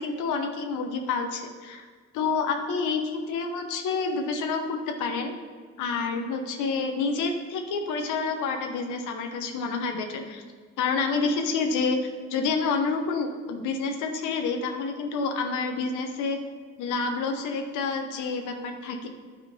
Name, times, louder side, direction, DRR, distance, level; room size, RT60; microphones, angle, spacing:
voice 1, 0.0-1.8 2.1-5.3 5.8-10.4 10.8-12.0 12.3-16.4 16.8-19.1, left 4 dB, 90° left, 5 dB, 0.8 m, -28 dB
9.2 x 3.6 x 5.2 m, 1.6 s
cardioid pair, 90°, 30 cm